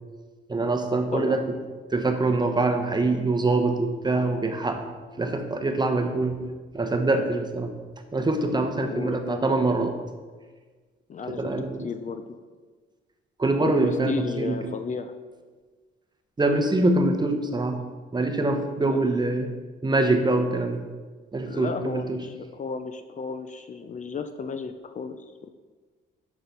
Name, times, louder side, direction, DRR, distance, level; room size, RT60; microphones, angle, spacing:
voice 1, 0.5-1.4 1.9-4.8 5.2-6.5 6.7-7.8 8.1-10.0 11.3-11.9 13.4-14.6 16.4-17.9 18.1-19.5 19.8-20.9 21.3-22.2, right 2 dB, 20° right, 6 dB, 0.9 m, -24 dB
voice 2, 8.9-9.5 11.1-11.5 11.8-12.4 13.6-15.2 18.8-19.1 21.5-25.5, left 5 dB, 40° left, 9 dB, 0.5 m, -33 dB
6.3 x 6.0 x 5.4 m, 1.4 s
cardioid pair, 90°, 20 cm